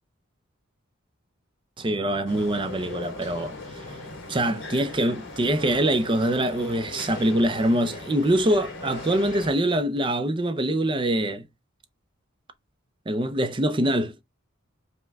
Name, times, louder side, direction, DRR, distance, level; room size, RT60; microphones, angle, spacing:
voice 1, 1.8-3.5 4.3-11.4 13.1-14.2, right 1 dB, 25° right, 0.5 m, -24 dB
sound 1, 2.3-9.5, left 2 dB, 65° left, 1.9 m, -39 dB
5.4 x 2.2 x 3.3 m
head